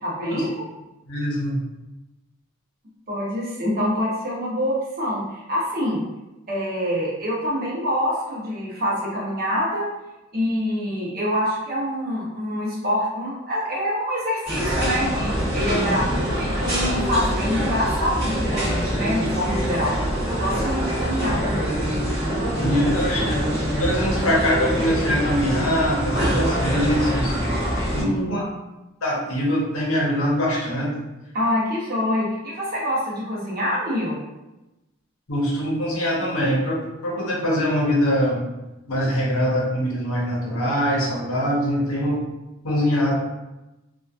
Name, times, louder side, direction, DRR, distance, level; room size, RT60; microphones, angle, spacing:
voice 1, 0.0-0.5 3.1-6.0 6.5-9.9 10.3-20.0 20.3-21.8 28.0-28.4 31.3-34.2, equal, 40° right, -5 dB, 0.7 m, -26 dB
voice 2, 1.1-1.6 22.6-27.4 27.9-28.4 29.0-30.9 35.3-38.5 38.9-42.2 42.6-43.1, equal, 70° left, -4 dB, 0.7 m, -23 dB
sound 1, 14.5-28.0, equal, 20° right, 1.0 m, -24 dB
2.7 x 2.2 x 2.3 m, 1.0 s
head